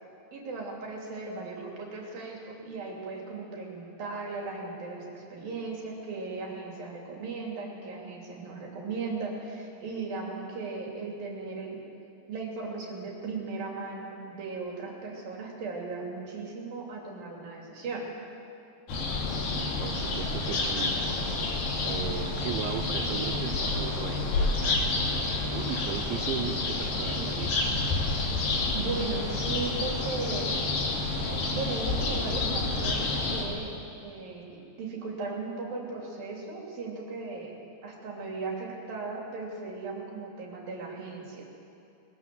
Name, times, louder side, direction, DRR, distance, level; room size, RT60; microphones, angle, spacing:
voice 1, 0.3-11.8 12.3-18.0 28.7-30.7 31.5-33.7 34.0-37.5 37.8-41.4, right 3 dB, 55° right, -1 dB, 4.5 m, -37 dB
sound 1, 18.9-33.5, left 3 dB, 55° left, 4.1 m, -29 dB
voice 2, 19.8-20.9 21.8-24.8 25.4-27.7, right 8 dB, 85° right, 5 dB, 3.4 m, -37 dB
21.0 x 20.5 x 7.7 m, 2.8 s
omnidirectional pair, 5.2 m